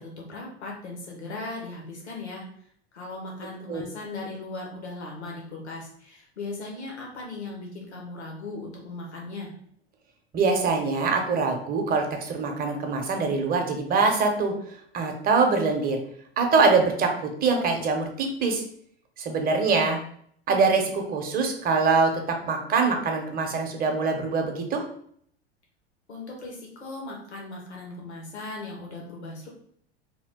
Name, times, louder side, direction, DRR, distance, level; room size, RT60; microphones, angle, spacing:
voice 1, 0.0-2.4 2.9-9.5 26.1-29.5, left 2 dB, 85° left, -2 dB, 1.0 m, -38 dB
voice 2, 10.3-14.5 14.9-16.0 16.4-18.6 19.2-20.0 20.5-24.8, right 4 dB, 30° right, 4 dB, 0.7 m, -24 dB
2.8 x 2.4 x 3.5 m, 0.63 s
figure-of-eight pair, 85°, 33 cm